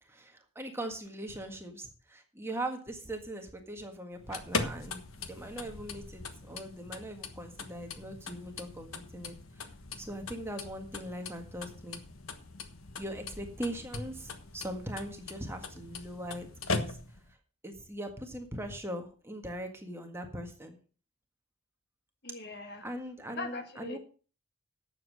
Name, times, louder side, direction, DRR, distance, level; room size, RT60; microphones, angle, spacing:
voice 1, 0.0-9.7 10.0-12.0 13.0-17.0 17.3-17.4 17.6-20.8 22.8-24.0, right 1 dB, 10° right, 4 dB, 1.7 m, -40 dB
sound 1, 4.1-17.3, left 3 dB, 70° left, 1.3 m, -40 dB
voice 2, 22.2-22.9 23.3-24.0, left 3 dB, 50° left, 8 dB, 1.6 m, -41 dB
11.0 x 7.5 x 6.3 m, 0.38 s
head